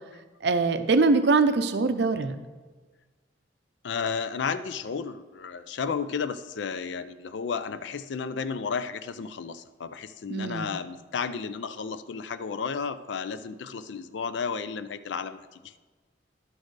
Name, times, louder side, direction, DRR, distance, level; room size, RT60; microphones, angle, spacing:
voice 1, 0.4-2.4 10.3-10.7, right 3 dB, 65° right, 10 dB, 0.5 m, -23 dB
voice 2, 3.8-15.8, left 5 dB, 75° left, 13 dB, 0.4 m, -33 dB
11.5 x 4.4 x 4.7 m, 1.3 s
head